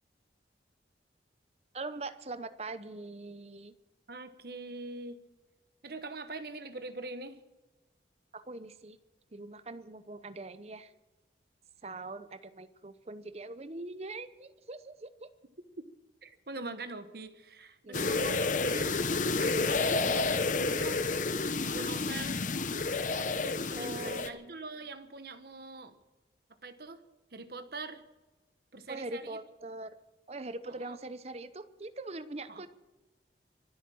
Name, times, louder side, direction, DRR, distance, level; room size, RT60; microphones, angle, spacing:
voice 1, 1.7-3.7 8.3-9.0 9.3-10.9 11.8-15.3 17.8-18.3 23.7-24.6 28.9-30.0 30.3-32.7, right 2 dB, 35° right, 12 dB, 0.9 m, -42 dB
voice 2, 4.1-5.2 5.8-7.4 16.2-19.0 19.4-21.0 21.6-22.4 23.2-26.0 26.6-27.0 27.3-28.0 28.7-29.4 30.6-31.0 32.5-32.6, right 3 dB, 55° right, 10 dB, 1.1 m, -43 dB
sound 1, 17.9-24.3, left 3 dB, 45° left, 0.8 m, -30 dB
24.5 x 8.4 x 6.3 m, 1.1 s
head